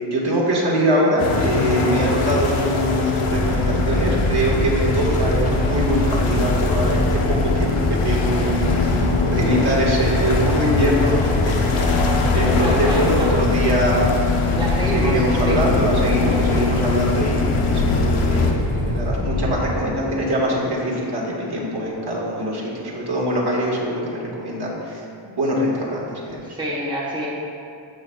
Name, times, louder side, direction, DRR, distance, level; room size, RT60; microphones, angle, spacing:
voice 1, 0.1-7.2 7.5-7.7 8.0-14.1 14.9-26.4, right 1 dB, 50° right, -4 dB, 1.8 m, -23 dB
sound 1, 1.2-18.5, left 4 dB, 80° left, 1.0 m, -23 dB
sound 2, 3.3-19.8, left 1 dB, 60° left, 1.1 m, -24 dB
voice 2, 12.6-13.3 14.5-15.6 26.4-27.3, right 1 dB, 10° right, -6 dB, 1.2 m, -28 dB
14.5 x 5.1 x 2.4 m, 2.6 s
wide cardioid pair, 105°, 49 cm